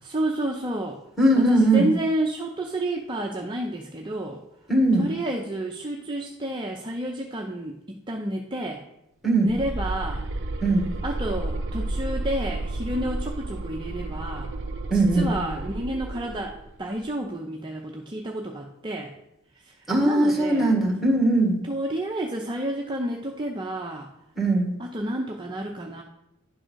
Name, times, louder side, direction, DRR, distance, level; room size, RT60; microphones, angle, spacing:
voice 1, 0.0-1.0 1.4-4.4 5.0-8.8 9.4-10.3 11.0-14.5 14.9-16.5 16.8-19.1 19.7-20.7 21.7-24.1 24.8-26.0, right 1 dB, 20° right, 0 dB, 0.6 m, -30 dB
voice 2, 1.2-1.9 4.7-5.1 9.2-9.5 10.6-10.9 14.9-15.3 19.9-21.6 24.4-24.7, right 2 dB, ahead, -1 dB, 1.8 m, -20 dB
sound 1, 9.5-16.7, right 2 dB, 60° right, 0.6 m, -32 dB
10.0 x 3.9 x 6.2 m, 0.80 s
head